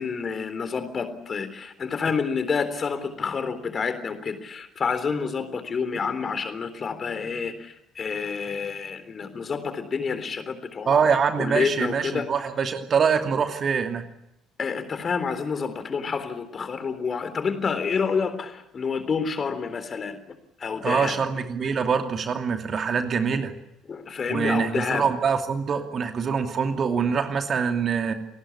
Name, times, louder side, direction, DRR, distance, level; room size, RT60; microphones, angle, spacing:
voice 1, 0.0-11.1 11.4-12.3 14.6-20.2 20.6-21.2 23.9-25.1, left 5 dB, 35° left, 11 dB, 3.7 m, -28 dB
voice 2, 10.9-14.0 20.8-23.5 24.3-28.1, right 6 dB, 40° right, 6 dB, 2.7 m, -24 dB
28.0 x 19.5 x 8.5 m, 0.81 s
figure-of-eight pair, 50°, 0 cm